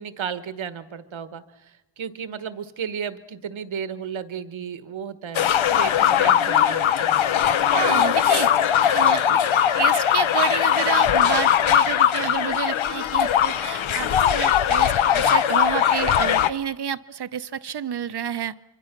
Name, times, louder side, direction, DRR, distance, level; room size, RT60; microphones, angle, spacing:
voice 1, 0.0-7.1, right 7 dB, 75° right, 13 dB, 1.4 m, -34 dB
sound 1, 5.3-16.5, left 9 dB, 75° left, 0.9 m, -20 dB
voice 2, 7.7-8.5 8.9-9.4 9.7-18.5, right 8 dB, 55° right, 14 dB, 0.8 m, -29 dB
24.5 x 24.5 x 6.0 m, 1.0 s
wide cardioid pair, 100°, 47 cm